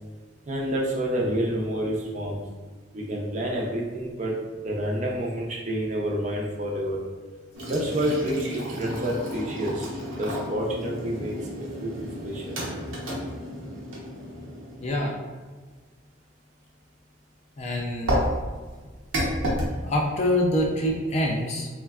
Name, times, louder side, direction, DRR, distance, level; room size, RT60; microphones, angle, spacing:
voice 1, 0.5-2.4 2.9-4.3 4.6-7.0 7.7-9.9 10.2-12.6, right 1 dB, 35° right, -2 dB, 0.4 m, -28 dB
sound 1, 7.5-15.2 18.1-19.7, equal, 80° right, 0.7 m, -31 dB
voice 2, 14.8-15.1 17.6-18.2 19.8-21.7, left 1 dB, 35° left, -1 dB, 0.3 m, -25 dB
3.3 x 2.1 x 2.3 m, 1.4 s
head